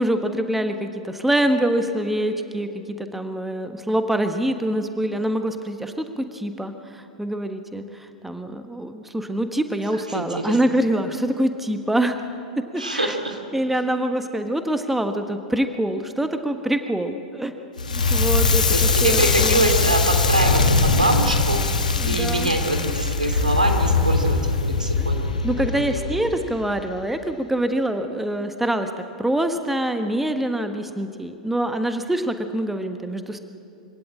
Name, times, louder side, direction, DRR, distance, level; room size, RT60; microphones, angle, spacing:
voice 1, 0.0-12.1 12.6-13.2 13.5-17.5 17.9-19.7 22.0-22.5 23.3-23.4 25.0-25.1 25.4-28.9 29.2-33.4, right 1 dB, 5° right, 7 dB, 1.3 m, -25 dB
voice 2, 10.1-10.6 12.8-13.4 18.7-25.4 25.7-26.0, right 1 dB, 90° right, 4 dB, 3.1 m, -24 dB
Crackle, 17.8-26.7, left 3 dB, 80° left, 1.7 m, -21 dB
25.0 x 17.0 x 8.7 m, 2.7 s
figure-of-eight pair, 95°, 4 cm